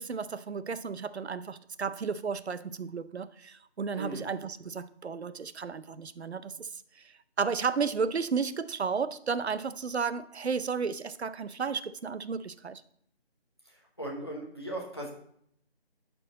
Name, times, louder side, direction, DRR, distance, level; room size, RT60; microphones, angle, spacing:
voice 1, 0.0-6.7 7.4-12.8, right 5 dB, 75° right, 0.6 m, -33 dB
voice 2, 3.9-4.3 14.0-15.1, right 1 dB, 25° left, 1.0 m, -37 dB
11.5 x 4.6 x 4.0 m
figure-of-eight pair, 180°, 33 cm